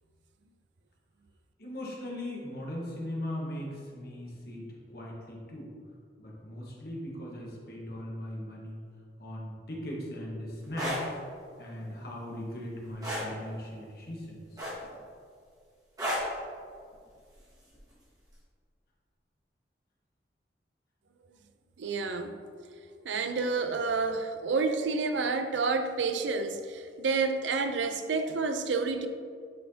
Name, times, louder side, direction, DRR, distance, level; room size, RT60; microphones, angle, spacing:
voice 1, 1.6-5.7 6.2-8.8 9.2-11.0 11.6-14.4, left 1 dB, 55° left, 1.4 m, -39 dB
sound 1, 10.6-11.0 13.0-13.3 14.6-15.0 16.0-16.3 17.7-17.9, equal, 20° right, 1.5 m, -32 dB
voice 2, 21.8-22.3 23.0-29.1, right 4 dB, 85° right, 0.5 m, -29 dB
9.2 x 4.3 x 2.8 m
head